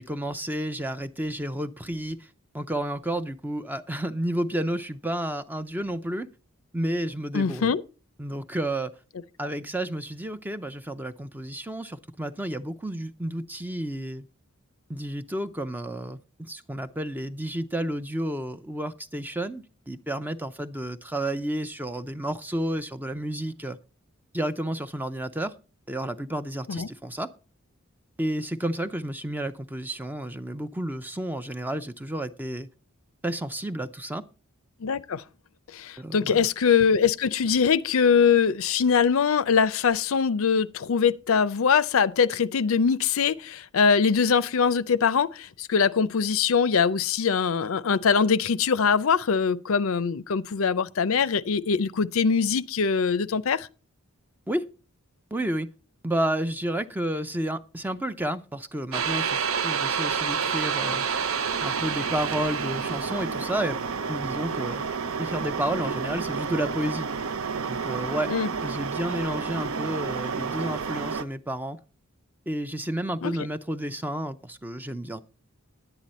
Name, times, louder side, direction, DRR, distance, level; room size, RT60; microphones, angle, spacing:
voice 1, 0.0-2.3 2.5-6.3 6.7-7.7 8.2-8.9 9.4-14.3 14.9-23.8 24.3-25.5 25.9-27.3 28.2-32.7 33.2-34.3 36.0-36.5 54.5-54.6 55.3-55.7 56.0-61.1 61.6-63.8 64.1-64.8 65.2-67.1 67.7-68.3 68.6-71.8 72.5-75.2, right 1 dB, 10° right, 0.5 m, -31 dB
voice 2, 7.3-7.8 26.7-26.9 34.8-35.2 35.7-53.7 68.3-68.5 73.2-73.3, left 6 dB, 70° left, 0.5 m, -22 dB
sound 1, 58.9-71.2, right 6 dB, 70° right, 0.7 m, -29 dB
11.0 x 9.1 x 4.2 m
head